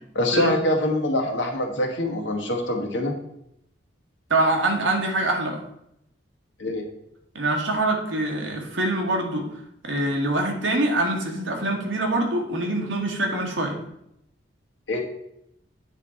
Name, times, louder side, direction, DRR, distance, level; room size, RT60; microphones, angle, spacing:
voice 1, 0.1-3.1 6.6-6.9 14.9-15.0, left 1 dB, 70° left, 1 dB, 1.5 m, -24 dB
voice 2, 4.3-5.6 7.3-9.5 9.8-13.7, right 2 dB, 80° right, 2 dB, 1.5 m, -24 dB
8.9 x 3.8 x 4.4 m, 0.78 s
head